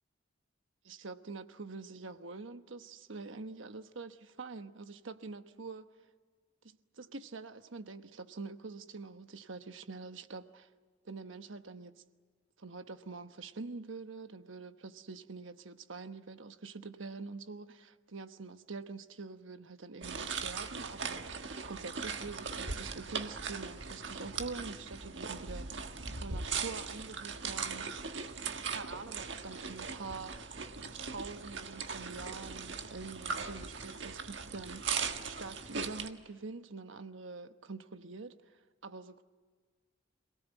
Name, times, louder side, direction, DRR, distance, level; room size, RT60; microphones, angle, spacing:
voice 1, 0.8-5.9 6.6-10.7 11.0-12.0 12.6-25.9 26.2-27.9 28.7-30.6 31.0-39.2, right 4 dB, 80° right, 1.2 m, -45 dB
sound 1, 20.0-36.1, right 5 dB, 65° right, 1.5 m, -39 dB
27.0 x 18.0 x 9.2 m
head